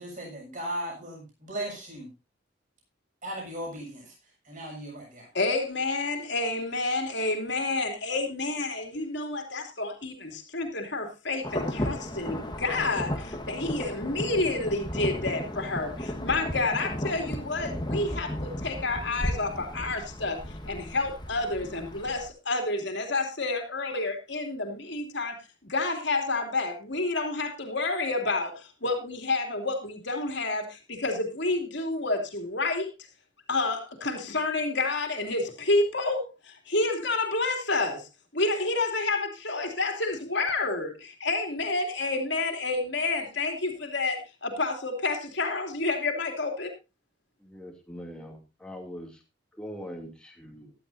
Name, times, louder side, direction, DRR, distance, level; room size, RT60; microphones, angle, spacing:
voice 1, 0.0-2.1 3.2-4.1 4.4-5.3, right 1 dB, 40° right, -1 dB, 7.1 m, -37 dB
voice 2, 5.3-20.4 20.7-32.9 33.5-46.7, left 3 dB, 65° left, 4 dB, 2.9 m, -29 dB
Insect / Thunder / Rain, 11.4-22.3, left 1 dB, 25° left, 1.5 m, -34 dB
voice 3, 47.4-49.2 49.6-50.7, equal, 5° left, 1 dB, 2.7 m, -42 dB
16.0 x 12.0 x 2.7 m, 0.26 s
head